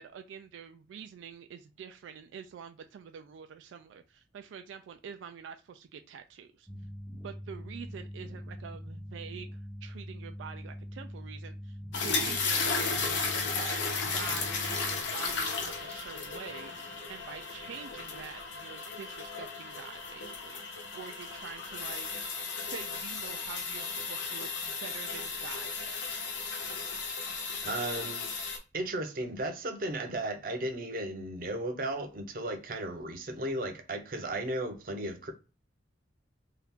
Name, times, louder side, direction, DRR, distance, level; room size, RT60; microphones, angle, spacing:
voice 1, 0.0-6.7 7.1-13.1 13.6-13.8 14.1-16.7 17.1-22.1 22.7-26.2, right 7 dB, 85° right, 0.3 m, -46 dB
sound 1, 6.7-15.0, equal, 5° right, 0.5 m, -43 dB
sound 2, 11.9-28.6, left 4 dB, 90° left, 0.8 m, -35 dB
voice 2, 27.6-28.3 28.7-35.3, right 1 dB, 50° right, 0.6 m, -35 dB
2.8 x 2.4 x 3.5 m
head